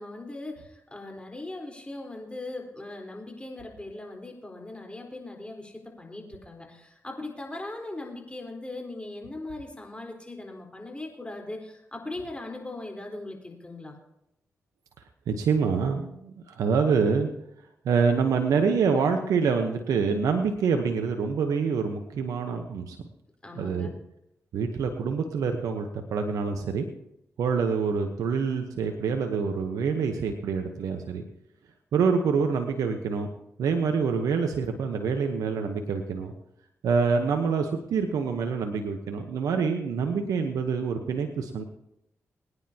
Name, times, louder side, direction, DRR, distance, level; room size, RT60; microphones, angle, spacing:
voice 1, 0.0-14.0 23.4-23.9, left 2 dB, 20° left, 2 dB, 4.2 m, -39 dB
voice 2, 15.3-17.3 17.8-23.0 23.6-23.9 24.5-26.9 27.4-31.2 31.9-33.3 33.6-36.3 36.8-41.6, right 5 dB, 80° right, 5 dB, 1.0 m, -26 dB
22.5 x 9.8 x 2.9 m, 0.82 s
supercardioid pair, 45°, 6 cm